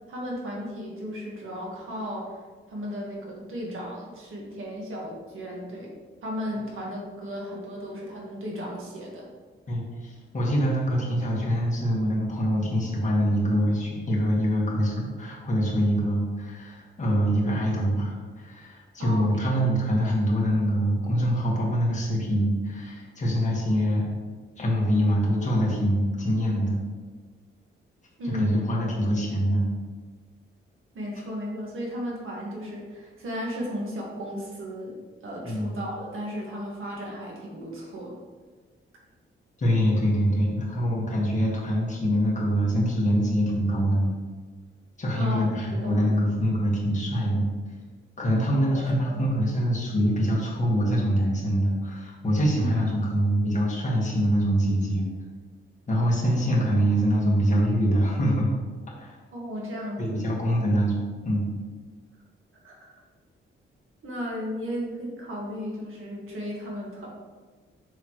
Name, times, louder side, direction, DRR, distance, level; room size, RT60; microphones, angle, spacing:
voice 1, 0.1-2.4 2.7-5.9 6.2-9.3 19.0-19.5 28.2-28.7 30.9-35.0 35.2-38.2 45.2-45.4 45.7-46.0 48.7-48.8 49.1-49.2 52.6-52.7 59.3-60.2 62.6-62.9 64.0-67.1, equal, 75° right, -3 dB, 1.8 m, -35 dB
voice 2, 9.7-24.0 24.6-26.8 28.2-29.7 35.4-35.7 39.6-44.1 45.0-47.5 48.2-55.1 55.9-58.5 59.0-59.2 60.0-60.9 61.2-61.5, equal, 35° left, -4 dB, 1.8 m, -24 dB
7.0 x 5.7 x 3.2 m, 1.4 s
wide cardioid pair, 145°, 21 cm